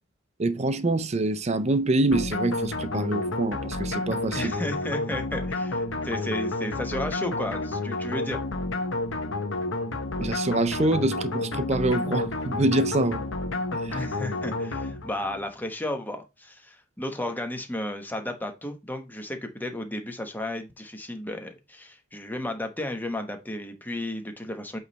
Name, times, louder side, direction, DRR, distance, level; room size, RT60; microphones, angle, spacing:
voice 1, 0.4-4.5 10.2-13.2 13.7-14.0, right 2 dB, 35° right, 0.6 m, -25 dB
sound 1, 2.1-15.4, left 2 dB, 75° left, 1.0 m, -30 dB
voice 2, 4.3-8.4 13.9-24.8, left 1 dB, 10° left, 1.0 m, -33 dB
8.2 x 3.3 x 4.0 m
head